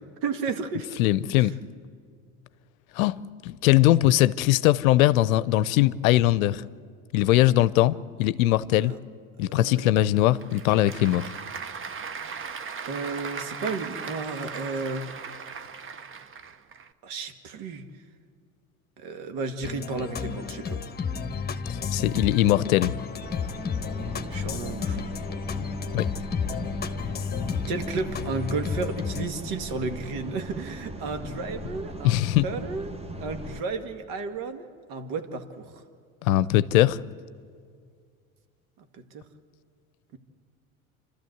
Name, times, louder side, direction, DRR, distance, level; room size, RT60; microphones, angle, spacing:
voice 1, 0.2-0.9 1.4-1.5 8.8-9.0 9.4-10.1 12.8-15.1 17.0-17.9 19.0-20.8 24.3-25.1 27.7-32.2 32.4-32.9 33.2-35.7 38.8-39.2, right 4 dB, 60° right, 2.0 m, -33 dB
voice 2, 1.0-1.5 3.0-3.2 3.4-6.6 7.1-8.9 9.4-11.3 21.7-22.9 25.9-26.1 32.0-32.5 36.2-37.0, left 15 dB, 70° left, 0.7 m, -21 dB
Applause / Crowd, 10.1-16.9, right 6 dB, 30° right, 1.0 m, -38 dB
sound 1, 19.6-29.3, left 6 dB, 20° left, 1.3 m, -32 dB
sound 2, 23.2-33.6, right 1 dB, 15° right, 1.3 m, -39 dB
29.0 x 13.0 x 8.0 m
hypercardioid pair, 70°, 42 cm